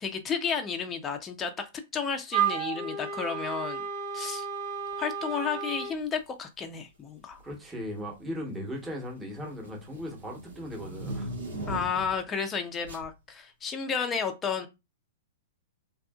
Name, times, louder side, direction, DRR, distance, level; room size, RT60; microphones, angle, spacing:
voice 1, 0.0-3.8 4.1-4.5 5.0-7.4 11.7-14.7, left 6 dB, 20° left, 0.4 m, -32 dB
Wind instrument woodwind instrument, 2.3-6.0, right 7 dB, 55° right, 1.0 m, -32 dB
sound 1, 5.9-6.2 7.2-7.6 8.0-12.2 12.8-13.1, right 1 dB, 85° right, 0.8 m, -40 dB
voice 2, 7.4-11.6, equal, 10° right, 1.0 m, -38 dB
2.6 x 2.4 x 2.3 m
hypercardioid pair, 110°, 0 cm